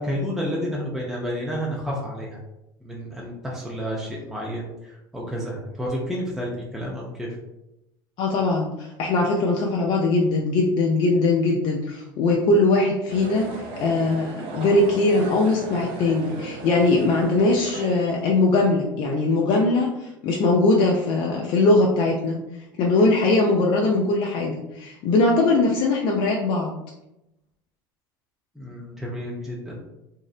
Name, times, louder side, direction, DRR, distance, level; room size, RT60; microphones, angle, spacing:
voice 1, 0.0-2.4 2.8-7.3 28.6-29.9, equal, ahead, -4 dB, 0.5 m, -30 dB
voice 2, 8.2-22.4 22.8-26.8, left 2 dB, 50° left, -1 dB, 0.4 m, -21 dB
sound 1, 13.1-18.3, right 2 dB, 55° right, 0.6 m, -36 dB
2.7 x 2.0 x 2.4 m, 0.91 s
hypercardioid pair, 85°, 11 cm